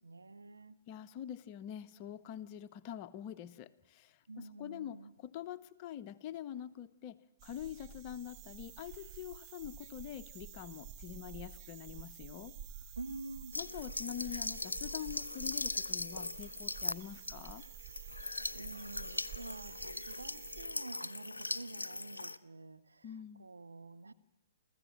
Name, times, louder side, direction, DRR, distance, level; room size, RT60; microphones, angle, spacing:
voice 1, 0.0-0.8 4.3-5.1 13.0-13.6 18.5-24.1, right 3 dB, 75° right, 1.0 m, -48 dB
voice 2, 0.9-12.5 13.6-17.6 23.0-23.5, left 10 dB, 30° left, 0.9 m, -45 dB
sound 1, 7.4-20.7, right 8 dB, 30° right, 1.1 m, -50 dB
sound 2, 13.5-22.4, left 2 dB, 80° left, 0.7 m, -40 dB
29.0 x 15.0 x 7.4 m
figure-of-eight pair, 120°, 0 cm